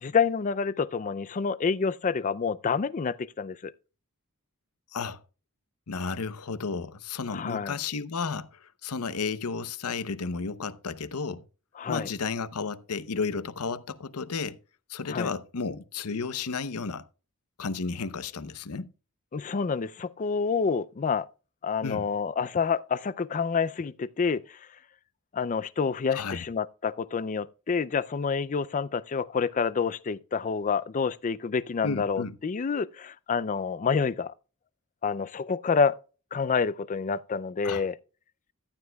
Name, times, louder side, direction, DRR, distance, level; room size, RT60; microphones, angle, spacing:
voice 1, 0.0-3.7 7.3-7.7 11.8-12.1 15.1-15.3 19.3-21.3 21.6-24.6 25.3-34.3 35.0-36.0 36.3-38.0, left 5 dB, 35° left, 0.4 m, -28 dB
voice 2, 5.9-11.4 11.9-14.6 14.9-17.0 17.6-18.9 21.8-22.0 26.1-26.4 31.8-32.4 37.6-37.8, left 4 dB, 80° left, 0.7 m, -33 dB
14.0 x 10.0 x 2.3 m
head